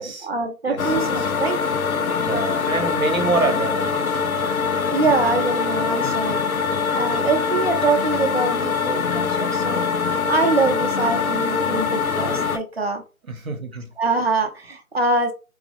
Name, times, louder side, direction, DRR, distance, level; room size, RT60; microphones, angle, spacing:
voice 1, 0.0-1.6 4.9-6.4 6.9-9.9 10.3-13.0 14.0-15.3, right 3 dB, 45° right, 0.8 m, -24 dB
voice 2, 0.7-1.2 2.2-4.2 13.3-13.9, right 3 dB, 65° right, 1.1 m, -26 dB
sound 1, 0.8-12.6, left 5 dB, 70° left, 0.6 m, -23 dB
3.5 x 2.4 x 3.4 m
figure-of-eight pair, 160°, 44 cm